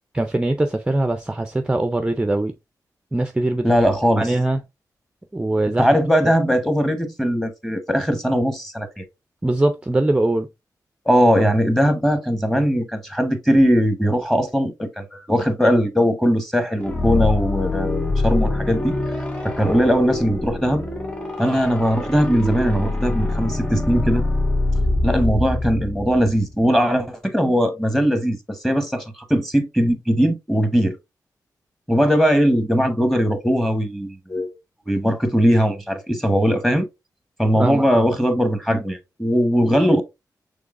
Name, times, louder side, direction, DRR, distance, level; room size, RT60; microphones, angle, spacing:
voice 1, 0.2-2.5 3.1-3.7 4.2-4.6 5.3-5.9 9.4-10.5 37.6-38.1, right 2 dB, 15° right, 0.4 m, -21 dB
voice 2, 3.6-4.3 5.8-9.0 11.0-18.9 19.4-20.8 21.4-24.2 25.0-30.9 31.9-34.5 34.9-36.9 37.4-40.0, equal, 5° left, 0.9 m, -19 dB
sound 1, 16.8-26.5, left 2 dB, 20° left, 2.0 m, -24 dB
6.0 x 3.2 x 2.4 m
wide cardioid pair, 100°, 7 cm